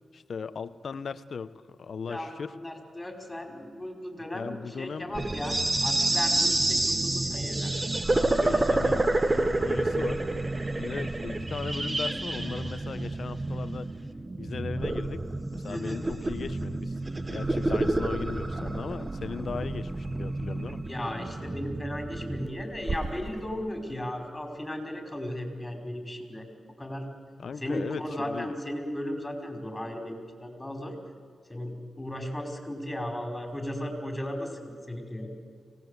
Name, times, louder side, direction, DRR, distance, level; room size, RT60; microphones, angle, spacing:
voice 1, 0.1-2.5 4.3-5.1 8.1-10.3 10.8-13.9 14.4-15.2 15.5-16.9 17.3-20.8 27.4-28.6, left 5 dB, 60° left, 14 dB, 1.0 m, -37 dB
voice 2, 2.0-7.7 15.7-16.0 20.9-26.5 26.8-27.1 27.6-30.9 31.5-35.3, left 1 dB, 15° left, 5 dB, 5.0 m, -36 dB
sound 1, 5.1-23.4, right 2 dB, 25° right, 1.3 m, -29 dB
25.0 x 18.0 x 8.2 m, 2.1 s
cardioid pair, 75°, 0 cm